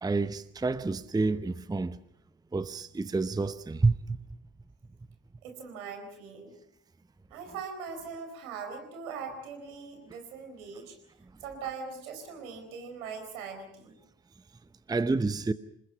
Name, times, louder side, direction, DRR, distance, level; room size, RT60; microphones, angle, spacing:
voice 1, 0.0-2.0 2.5-4.2 14.9-15.5, right 3 dB, 10° right, 0.8 m, -28 dB
voice 2, 5.4-6.5 7.3-11.0 11.4-14.0, right 5 dB, 70° right, 4.6 m, -41 dB
27.5 x 20.5 x 5.9 m
figure-of-eight pair, 50°, 43 cm